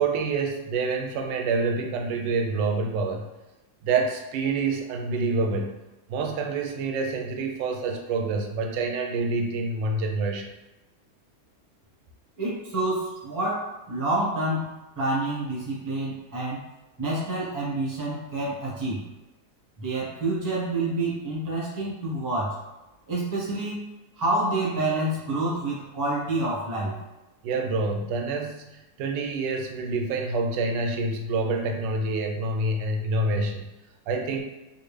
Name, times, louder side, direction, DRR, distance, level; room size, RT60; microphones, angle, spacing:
voice 1, 0.0-3.3 3.8-5.8 6.1-10.5 27.4-33.7 34.1-34.4, right 3 dB, 85° right, 3 dB, 1.2 m, -27 dB
voice 2, 12.4-16.6 17.0-19.0 19.8-22.6 23.1-23.9 24.2-27.0, right 2 dB, 15° right, -5 dB, 0.6 m, -28 dB
3.6 x 2.5 x 3.2 m, 1.0 s
omnidirectional pair, 1.9 m